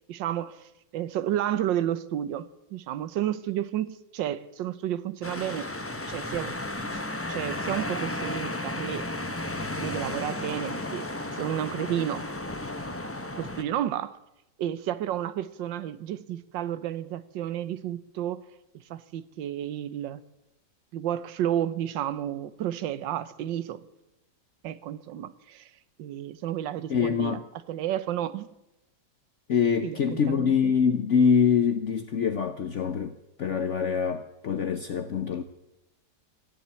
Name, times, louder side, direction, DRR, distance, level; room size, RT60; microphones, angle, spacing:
voice 1, 0.1-5.7 6.1-6.5 6.9-7.0 7.3-9.1 9.8-12.3 13.4-14.2 14.6-18.4 18.9-20.2 20.9-23.8 24.6-25.7 26.0-27.4 27.7-28.5 29.8-30.7, right 11 dB, 85° right, 1.5 m, -31 dB
sound 1, 5.2-13.6, left 1 dB, 15° left, 0.5 m, -34 dB
voice 2, 26.9-27.4 29.5-33.1 33.4-35.4, left 6 dB, 55° left, 0.8 m, -24 dB
15.5 x 10.5 x 8.2 m
omnidirectional pair, 1.9 m